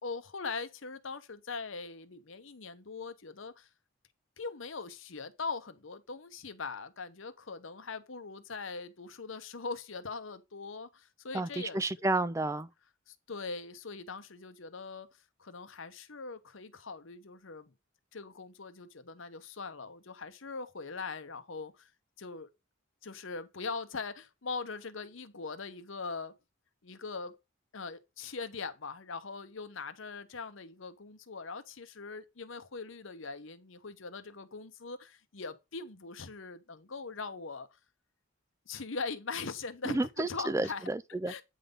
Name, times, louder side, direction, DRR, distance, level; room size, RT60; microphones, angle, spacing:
voice 1, 0.0-3.7 4.4-11.8 13.1-17.7 18.1-21.9 22.2-22.5 23.0-26.4 26.8-27.4 27.7-37.7 38.7-40.9 41.3-41.4, left 4 dB, 70° left, 1.0 m, -41 dB
voice 2, 11.3-12.7 39.8-41.3, right 2 dB, 15° right, 0.3 m, -31 dB
9.2 x 4.0 x 5.2 m
head